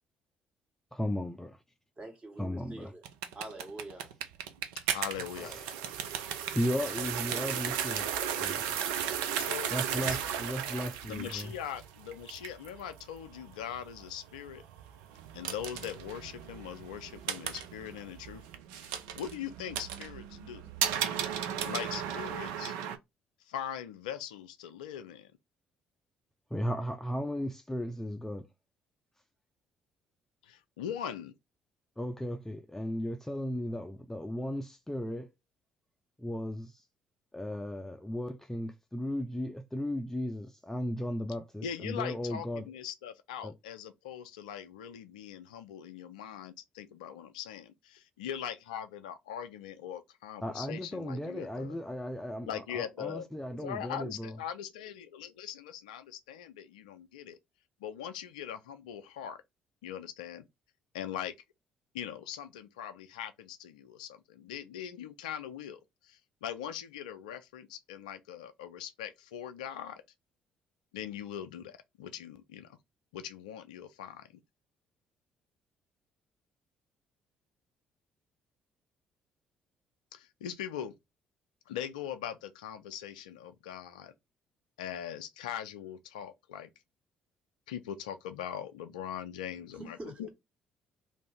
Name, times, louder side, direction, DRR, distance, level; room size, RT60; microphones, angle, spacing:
voice 1, 0.9-1.6 2.4-2.9 5.4-5.7 6.5-8.1 8.4-8.9 9.7-11.5 26.5-28.4 32.0-35.3 36.2-36.8 37.3-42.7 43.4-43.5 50.4-54.4, equal, 10° left, 0.5 m, -36 dB
voice 2, 2.0-3.0 3.3-4.1 89.7-90.3, right 1 dB, 25° right, 1.4 m, -45 dB
sound 1, 3.0-23.0, right 9 dB, 70° right, 0.4 m, -36 dB
voice 3, 4.9-5.5 9.4-10.3 11.1-14.6 15.3-18.4 18.7-20.7 21.7-22.8 23.5-25.3 30.4-31.3 41.6-51.8 52.4-57.4 57.8-59.4 59.8-60.4 60.9-61.3 61.9-70.0 70.9-72.7 73.1-74.3 80.1-80.9 81.7-84.1 84.8-86.7 87.7-90.3, left 9 dB, 75° left, 0.4 m, -41 dB
2.6 x 2.6 x 3.4 m
figure-of-eight pair, 45°, 4 cm